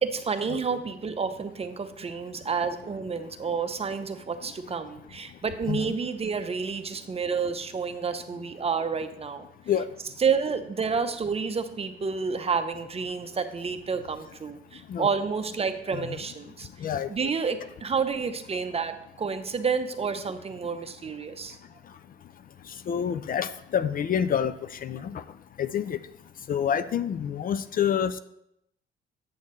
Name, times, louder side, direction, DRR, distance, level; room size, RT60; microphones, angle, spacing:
voice 1, 0.0-9.5 10.2-16.7 17.1-21.6, right 5 dB, 30° right, 9 dB, 0.6 m, -29 dB
voice 2, 22.9-25.2 25.6-26.0 26.5-28.2, left 8 dB, 45° left, 13 dB, 0.4 m, -27 dB
8.5 x 6.4 x 3.1 m, 0.79 s
cardioid pair, 90°, 20 cm